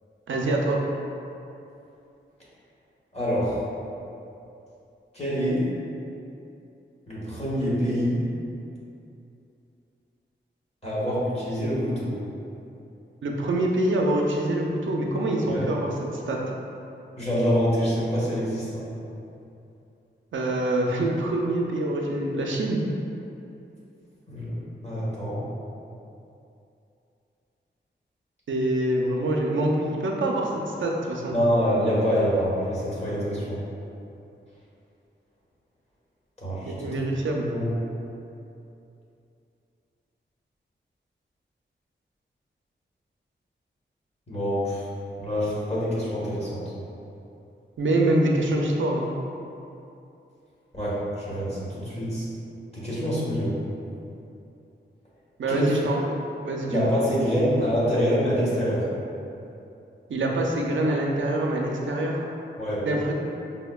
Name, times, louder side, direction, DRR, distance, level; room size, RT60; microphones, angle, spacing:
voice 1, 0.3-0.8 13.2-15.9 16.3-16.4 20.3-22.8 28.5-31.3 36.7-37.5 47.8-49.1 55.4-56.1 56.4-56.9 60.1-62.2 62.9-63.1, right 1 dB, 80° right, 0 dB, 0.4 m, -25 dB
voice 2, 3.1-3.6 5.1-5.7 7.1-8.2 10.8-12.2 15.5-15.6 17.2-18.9 24.3-24.6 24.8-25.4 31.3-33.6 36.4-36.7 37.5-37.7 44.3-44.9 45.2-46.7 50.7-52.3 52.7-53.6 55.5-55.8 56.7-58.9 62.6-62.9, equal, 35° left, -9 dB, 1.1 m, -25 dB
5.3 x 2.1 x 2.2 m, 2.7 s
wide cardioid pair, 95°, 20 cm